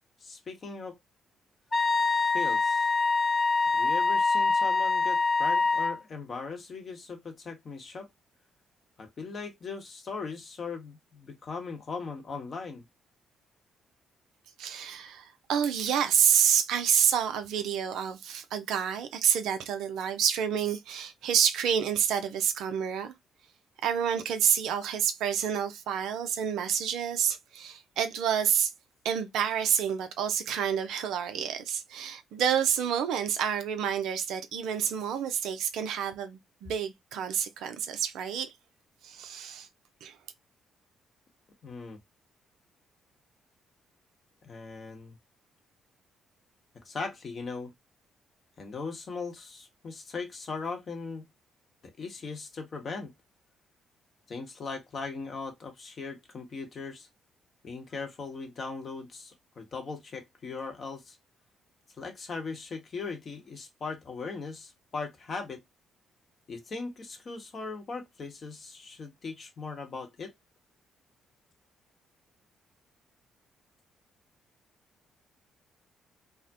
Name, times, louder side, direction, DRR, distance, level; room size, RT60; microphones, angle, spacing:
voice 1, 0.2-1.0 2.3-2.9 3.7-8.1 9.0-12.8 41.6-42.0 44.4-45.2 46.8-47.7 48.6-51.2 52.0-53.1 54.3-57.1 57.6-61.2 62.0-65.6 66.5-70.3, left 4 dB, 45° left, 0.8 m, -39 dB
Wind instrument woodwind instrument, 1.7-6.0, left 4 dB, 30° left, 0.4 m, -25 dB
voice 2, 14.6-23.1 23.8-28.7 29.0-38.5 39.0-39.7 40.0-40.2, right 8 dB, 65° right, 0.4 m, -28 dB
2.3 x 2.0 x 2.6 m
hypercardioid pair, 45°, 0 cm